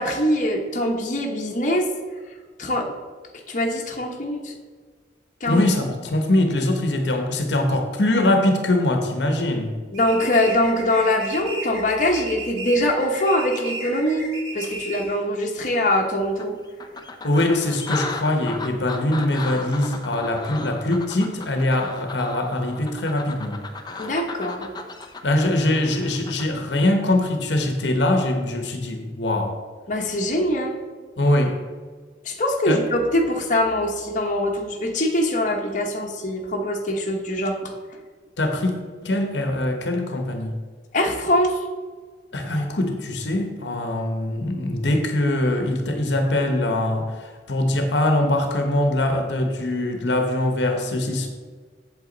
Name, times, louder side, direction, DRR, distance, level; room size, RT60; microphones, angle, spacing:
voice 1, 0.0-1.9 2.6-2.9 3.5-4.5 5.4-5.6 9.9-16.5 24.0-24.7 29.9-30.8 32.2-37.7 40.9-41.6, left 1 dB, 45° left, 1 dB, 1.2 m, -23 dB
voice 2, 5.5-9.8 17.2-23.6 25.2-29.6 31.2-31.7 32.7-32.8 38.4-38.7 39.0-40.6 42.3-51.3, left 1 dB, 80° left, 5 dB, 1.0 m, -22 dB
sound 1, 9.9-15.2, right 2 dB, 90° right, 2.0 m, -35 dB
sound 2, 15.7-15.8 16.4-26.5, left 3 dB, 25° left, 0.7 m, -35 dB
8.2 x 7.6 x 4.0 m, 1.5 s
head